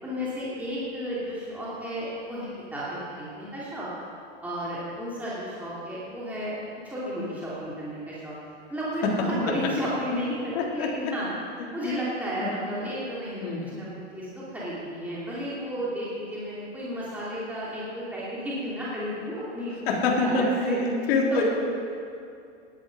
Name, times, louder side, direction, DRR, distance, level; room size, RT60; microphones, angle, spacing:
voice 1, 0.0-3.9 4.4-6.5 6.8-8.4 8.7-11.3 11.7-13.9 14.1-19.7 20.0-20.8 21.3-21.4, equal, 5° right, -9 dB, 2.8 m, -33 dB
voice 2, 10.5-10.9 11.6-12.0 12.4-12.5 13.4-13.6 19.9-21.4, left 3 dB, 55° left, -2 dB, 3.6 m, -26 dB
17.5 x 11.5 x 5.3 m, 2.5 s
supercardioid pair, 155°, 36 cm